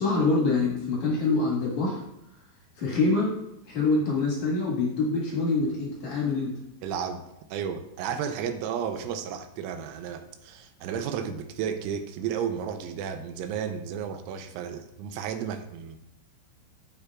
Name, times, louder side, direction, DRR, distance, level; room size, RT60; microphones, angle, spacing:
voice 1, 0.0-2.0 2.8-3.4 3.6-6.5, left 3 dB, 60° left, -4 dB, 2.1 m, -25 dB
voice 2, 6.8-7.2 7.5-16.0, right 8 dB, 85° right, 7 dB, 3.1 m, -33 dB
16.0 x 5.6 x 2.4 m, 0.85 s
omnidirectional pair, 5.7 m